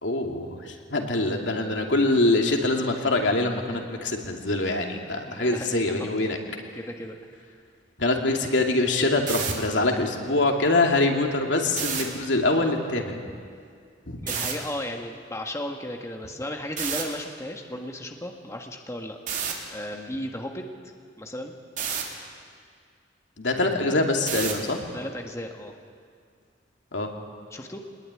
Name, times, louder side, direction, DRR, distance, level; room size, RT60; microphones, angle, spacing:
voice 1, 0.0-6.4 8.0-13.2 14.1-14.2 19.9-20.1 23.4-24.9 26.9-27.1, left 2 dB, 85° left, 2 dB, 2.7 m, -24 dB
voice 2, 5.3-6.1 6.7-7.2 14.2-19.2 19.7-20.6 21.2-21.5 23.6-24.0 24.9-25.7 27.5-27.8, left 1 dB, 15° left, 3 dB, 1.6 m, -35 dB
sound 1, 9.1-9.5 11.7-12.0 14.3-14.5 16.8-17.0 19.3-19.5 21.8-22.0 24.3-24.6, right 7 dB, 45° right, 3.2 m, -29 dB
23.0 x 20.0 x 9.9 m, 2.2 s
head